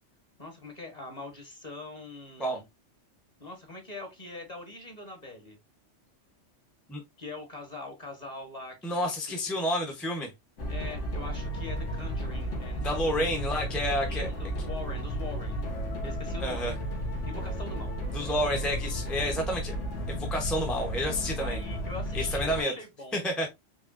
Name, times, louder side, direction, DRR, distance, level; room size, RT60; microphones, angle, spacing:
voice 1, 0.4-2.6 3.4-5.6 7.2-9.4 10.7-13.3 14.1-15.6 16.0-16.8 17.2-17.9 21.4-23.3, left 2 dB, 35° left, 1.4 m, -42 dB
voice 2, 8.8-10.3 12.8-14.3 16.4-16.7 18.1-19.7 20.1-21.6 22.1-22.7 23.1-23.5, equal, ahead, 0.7 m, -30 dB
sound 1, 10.6-22.6, equal, 80° left, 1.7 m, -33 dB
4.9 x 3.2 x 2.4 m
omnidirectional pair, 1.2 m